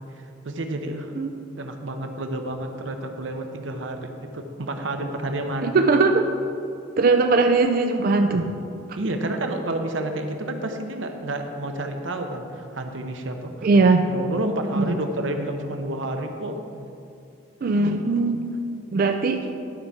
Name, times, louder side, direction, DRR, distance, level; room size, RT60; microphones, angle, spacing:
voice 1, 0.2-1.1 1.6-5.8 8.3-8.4 8.9-13.7 14.0-16.6, right 1 dB, 85° right, 5 dB, 0.9 m, -30 dB
voice 2, 5.6-6.3 7.0-8.5 13.6-14.1 14.8-14.9 17.6-18.4 18.9-19.5, right 3 dB, 50° right, 5 dB, 0.4 m, -19 dB
11.5 x 4.7 x 5.7 m, 2.6 s
head